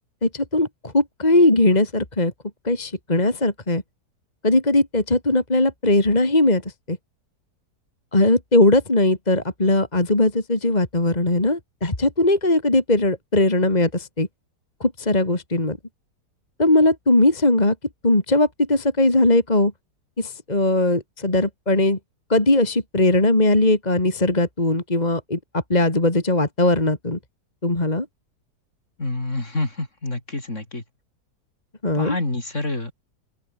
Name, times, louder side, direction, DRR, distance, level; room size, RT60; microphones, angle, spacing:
voice 1, 0.2-2.3 2.6-3.8 4.4-6.6 6.9-7.0 8.1-14.3 14.8-15.8 16.6-17.7 18.0-19.7 20.2-22.0 22.3-27.2 27.6-28.1 31.8-32.2, left 2 dB, 25° left, 3.1 m, -19 dB
voice 2, 29.0-30.8 31.9-32.9, left 2 dB, 45° left, 5.2 m, -27 dB
open air
omnidirectional pair, 1.7 m